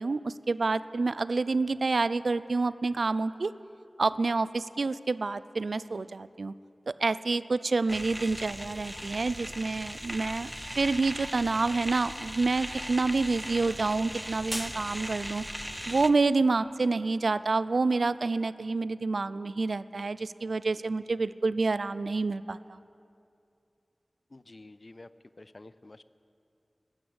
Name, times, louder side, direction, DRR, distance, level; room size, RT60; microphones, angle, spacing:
voice 1, 0.0-3.5 4.0-6.5 7.0-10.5 10.8-15.4 15.9-22.8, right 3 dB, 85° right, 16 dB, 0.3 m, -28 dB
sound 1, 7.9-16.1, equal, 5° right, 0.7 m, -38 dB
voice 2, 24.3-25.1 25.4-26.0, left 2 dB, 50° left, 15 dB, 0.4 m, -49 dB
12.5 x 12.5 x 8.0 m, 2.6 s
wide cardioid pair, 50°, 0 cm